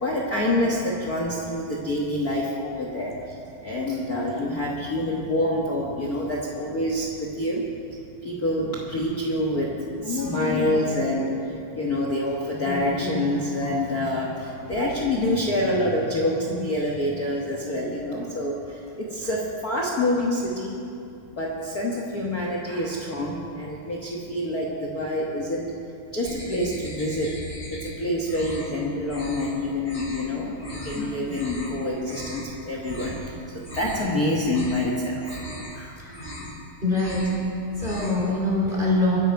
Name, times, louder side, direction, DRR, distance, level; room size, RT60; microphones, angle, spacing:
voice 1, 0.0-20.8 21.3-25.7 26.1-27.4 27.7-35.4 35.7-36.0, left 1 dB, 70° left, -2 dB, 0.9 m, -27 dB
sound 1, 26.2-27.9 28.2-28.7 29.1-29.5 29.8-30.2 30.6-31.0 31.3-31.7 32.0-32.5 32.8-33.2 33.5-34.1 34.4-34.9 35.2-35.7 36.0-36.6 36.9-37.4 37.7-38.2, left 1 dB, 15° left, 2.5 m, -38 dB
voice 2, 36.8-37.3 37.8-39.2, left 2 dB, 15° right, -5 dB, 3.4 m, -23 dB
23.5 x 10.5 x 4.7 m, 2.6 s
omnidirectional pair, 3.9 m